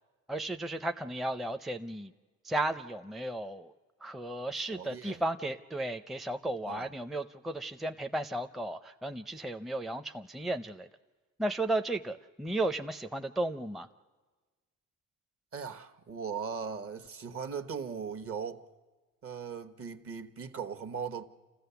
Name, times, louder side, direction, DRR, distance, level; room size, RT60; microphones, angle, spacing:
voice 1, 0.3-2.1 2.4-3.7 4.0-10.9 11.4-13.9, right 1 dB, ahead, 0.5 m, -34 dB
voice 2, 4.7-5.2 6.7-6.9 15.5-18.6 19.2-21.3, right 6 dB, 50° right, 1.2 m, -39 dB
28.0 x 15.0 x 7.0 m
cardioid pair, 90°, 30 cm